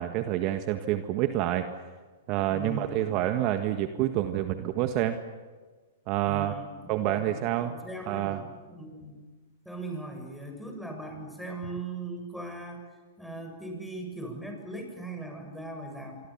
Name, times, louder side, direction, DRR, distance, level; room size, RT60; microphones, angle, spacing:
voice 1, 0.0-1.7 2.3-5.2 6.1-6.5 6.9-7.7 8.1-8.4, right 13 dB, 45° right, 8 dB, 1.6 m, -28 dB
voice 2, 2.5-3.1 6.2-9.2 9.7-12.9 13.2-16.2, right 2 dB, ahead, 2 dB, 7.3 m, -39 dB
26.5 x 24.5 x 7.5 m, 1.4 s
hypercardioid pair, 115°, 0 cm